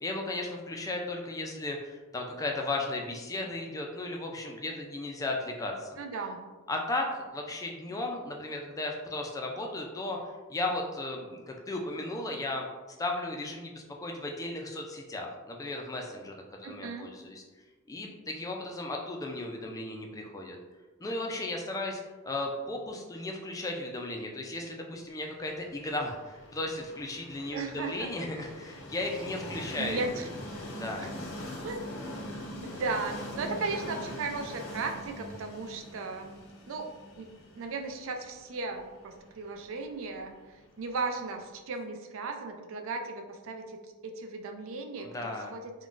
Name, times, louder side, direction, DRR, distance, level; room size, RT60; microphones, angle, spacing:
voice 1, 0.0-6.0 6.7-12.7 13.0-16.3 16.6-17.4 17.9-20.6 21.0-30.0 30.7-31.1 44.9-45.5, left 2 dB, 15° left, 1 dB, 0.3 m, -35 dB
voice 2, 6.0-6.4 16.6-17.2 27.5-28.3 29.8-30.3 31.0-31.1 31.6-31.9 32.6-36.3 36.7-40.4 40.8-45.7, right 3 dB, 65° right, 4 dB, 0.4 m, -36 dB
Train, 25.6-41.4, left 1 dB, 65° left, 0.6 m, -43 dB
3.7 x 2.2 x 2.4 m, 1.3 s
head